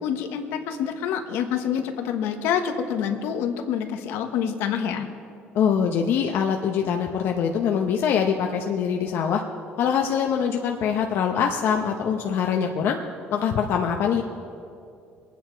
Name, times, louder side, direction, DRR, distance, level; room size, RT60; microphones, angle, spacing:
voice 1, 0.0-5.1, left 8 dB, 80° left, 5 dB, 1.2 m, -27 dB
voice 2, 5.5-9.4 9.8-13.0 13.3-14.2, left 7 dB, 65° left, 2 dB, 0.9 m, -23 dB
22.5 x 9.4 x 4.6 m, 2.5 s
cardioid pair, 100°, 4 cm